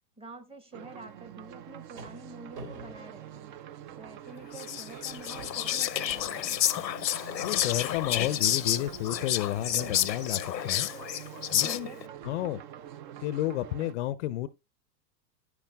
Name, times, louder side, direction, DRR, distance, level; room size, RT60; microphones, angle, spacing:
voice 1, 0.2-3.5 3.9-6.6 11.6-12.0, right 2 dB, 10° right, 1.0 m, -47 dB
sound 1, 0.7-14.0, right 10 dB, 35° right, 0.4 m, -46 dB
sound 2, 1.4-4.1 4.5-4.7 5.0-8.5 9.8-10.5 11.4-11.5 12.2-12.7, right 3 dB, 70° right, 3.1 m, -49 dB
Whispering, 4.5-12.0, left 11 dB, 90° left, 0.7 m, -30 dB
voice 2, 7.4-10.9 11.5-11.9 12.2-12.6 13.2-14.5, left 14 dB, 45° left, 0.5 m, -31 dB
10.5 x 9.9 x 2.3 m
hypercardioid pair, 105°, 49 cm